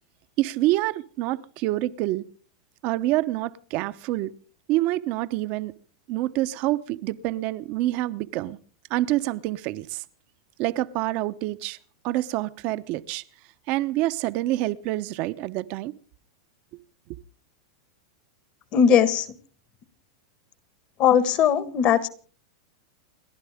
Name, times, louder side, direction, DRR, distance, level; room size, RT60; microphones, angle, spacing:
voice 1, 0.4-2.2 2.8-4.3 4.7-5.7 6.1-8.6 8.9-10.0 10.6-11.8 12.0-13.2 13.7-15.9, right 16 dB, 45° right, 0.9 m, -27 dB
voice 2, 18.7-19.3 21.0-22.1, left 8 dB, 40° left, 1.5 m, -19 dB
29.5 x 11.5 x 3.6 m
supercardioid pair, 130°, 3 cm